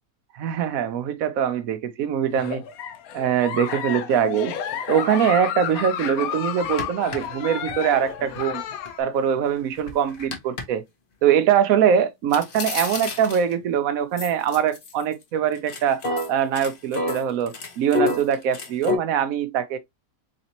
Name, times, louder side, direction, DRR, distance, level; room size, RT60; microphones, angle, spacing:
voice 1, 0.3-2.6 3.1-4.5 4.9-8.6 9.0-10.8 11.2-16.0 16.3-19.8, right 8 dB, 65° right, 1.0 m, -22 dB
Giggle, 2.3-9.0, left 9 dB, 70° left, 1.0 m, -31 dB
sound 1, 5.6-5.7 6.1-6.2 6.6-8.9 9.4-10.6 12.3-13.6 14.2-15.2 15.5-19.0, left 3 dB, 45° left, 0.9 m, -29 dB
4.1 x 3.3 x 2.8 m
omnidirectional pair, 1.7 m